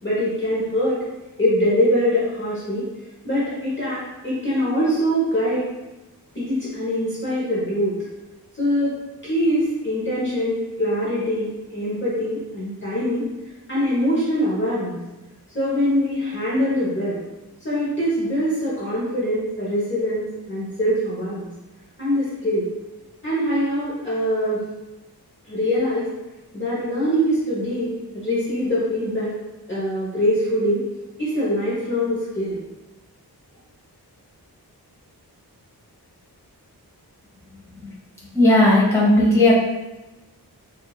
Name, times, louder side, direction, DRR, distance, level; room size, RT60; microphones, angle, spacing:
voice 1, 0.0-1.0 1.4-2.9 3.2-5.7 6.3-8.0 8.6-9.0 9.2-13.3 13.7-15.0 15.5-17.2 17.6-21.5 22.0-22.7 23.2-24.6 25.5-26.1 26.5-29.4 29.7-30.9 31.2-32.6, equal, 30° left, -9 dB, 1.1 m, -23 dB
voice 2, 38.3-39.5, left 1 dB, 5° left, -8 dB, 1.4 m, -15 dB
4.7 x 2.7 x 2.4 m, 1.0 s
wide cardioid pair, 90°, 39 cm